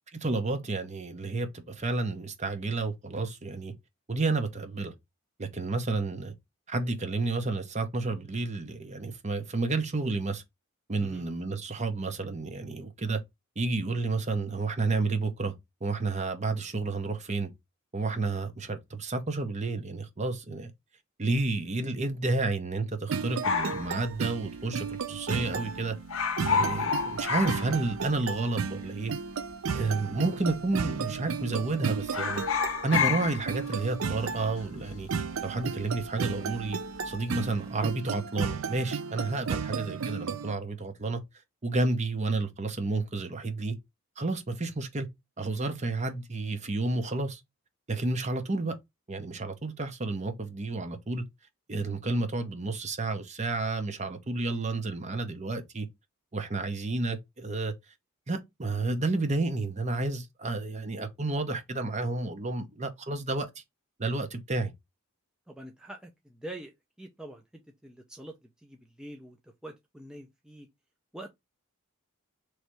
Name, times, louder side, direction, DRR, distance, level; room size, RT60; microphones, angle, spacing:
voice 1, 0.1-3.7 4.1-4.9 5.4-6.3 6.7-10.4 10.9-13.2 13.6-15.5 15.8-17.5 17.9-20.7 21.2-26.0 26.5-29.1 29.7-32.4 32.8-35.1 35.4-36.8 37.0-41.2 41.6-43.8 44.2-45.1 45.4-47.4 47.9-48.7 49.1-51.2 51.7-55.9 56.3-57.7 58.3-63.6 64.0-64.7, right 3 dB, 35° right, 0.7 m, -31 dB
voice 2, 10.9-11.3 37.0-37.3 65.5-66.7 67.0-68.4 68.6-70.7 71.1-71.3, right 1 dB, 5° right, 0.5 m, -45 dB
sound 1, 23.1-40.5, right 5 dB, 70° right, 0.5 m, -34 dB
sound 2, 23.4-24.9 25.2-25.3 25.5-25.8 26.0-28.3 28.6-28.7 29.5-30.1 30.5-30.7 31.0-31.7 32.0-36.6 36.9-37.4, left 6 dB, 65° left, 0.6 m, -31 dB
3.2 x 2.7 x 4.6 m
head